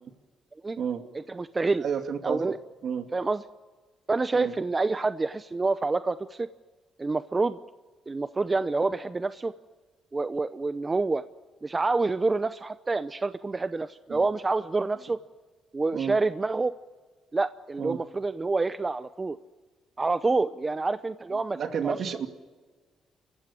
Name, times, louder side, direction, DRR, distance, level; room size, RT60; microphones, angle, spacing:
voice 1, 1.3-1.8 2.2-2.6 3.1-3.4 4.1-6.5 7.0-7.6 8.1-9.5 10.1-11.2 11.6-15.2 15.7-16.7 17.3-19.4 20.0-21.6 21.8-22.0, right 3 dB, 25° right, 12 dB, 0.7 m, -27 dB
voice 2, 1.8-2.6 2.8-3.1 4.3-4.5 14.1-14.2 15.9-16.2 17.8-18.0 21.3-22.3, right 7 dB, 60° right, 6 dB, 2.5 m, -31 dB
29.0 x 15.5 x 9.9 m, 1.4 s
cardioid pair, 90°, 0 cm